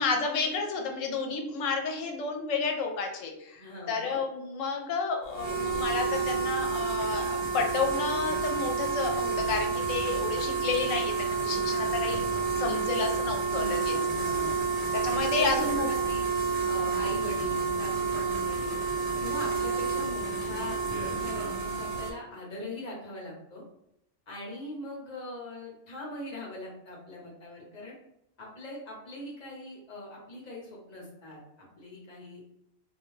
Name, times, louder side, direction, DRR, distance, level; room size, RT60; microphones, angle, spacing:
voice 1, 0.0-13.9 14.9-15.9, left 4 dB, 75° left, 2 dB, 0.9 m, -31 dB
voice 2, 3.5-4.2 13.5-14.6 15.2-16.2 16.6-18.8 19.2-23.6 24.3-27.9 28.4-32.4, left 1 dB, 40° left, -3 dB, 0.8 m, -41 dB
sound 1, 5.3-22.1, right 5 dB, 80° right, 1.0 m, -29 dB
2.4 x 2.2 x 3.1 m, 0.80 s
omnidirectional pair, 1.3 m